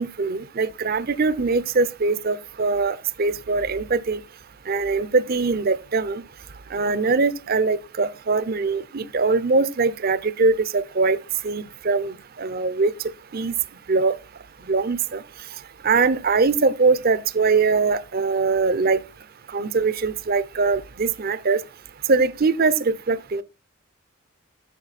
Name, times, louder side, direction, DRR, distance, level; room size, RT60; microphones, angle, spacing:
voice 1, 0.0-4.2 4.7-6.2 6.7-11.2 11.4-12.1 12.4-12.9 13.3-13.6 13.9-14.1 14.7-15.2 15.8-19.0 19.5-21.6 22.1-23.4, right 4 dB, 45° right, 0.5 m, -22 dB
9.1 x 6.0 x 4.0 m
head